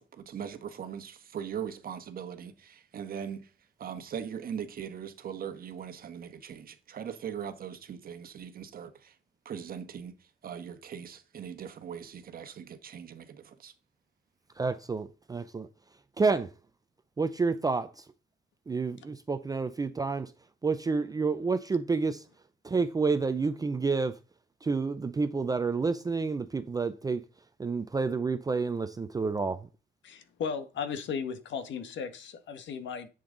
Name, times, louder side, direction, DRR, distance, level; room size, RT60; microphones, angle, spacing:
voice 1, 0.0-3.5 3.8-9.1 9.4-10.1 10.4-13.7, right 8 dB, 45° right, 1.3 m, -40 dB
voice 2, 14.6-15.7 16.2-16.5 17.2-18.1 18.7-20.3 20.6-22.2 22.6-24.2 24.6-27.2 27.6-29.7, right 4 dB, 20° right, 0.5 m, -29 dB
voice 3, 30.0-33.1, left 6 dB, 70° left, 1.4 m, -36 dB
10.5 x 7.9 x 3.9 m
cardioid pair, 155°, 20 cm